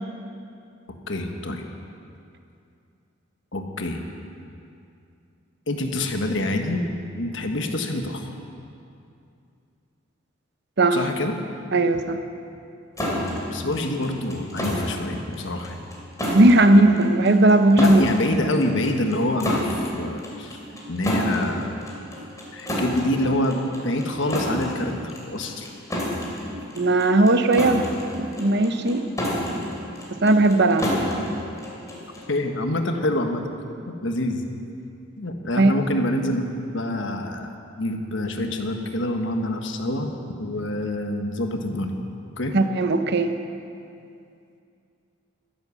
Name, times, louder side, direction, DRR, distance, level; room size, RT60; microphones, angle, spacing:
voice 1, 1.1-1.6 3.5-4.0 5.7-6.8 7.1-8.3 10.9-11.3 13.5-15.8 17.8-20.6 20.9-21.7 22.5-25.7 32.3-33.5 33.9-34.4 35.2-40.1 40.4-41.9 42.4-42.6, left 1 dB, 65° left, 4 dB, 1.3 m, -26 dB
voice 2, 11.7-12.2 16.3-18.0 26.7-27.9 28.1-29.1 30.1-30.9 35.6-35.7 42.5-43.3, right 2 dB, 55° right, 8 dB, 0.8 m, -17 dB
sound 1, 13.0-32.3, equal, 15° left, 2.9 m, -30 dB
14.5 x 10.5 x 7.1 m, 2.5 s
head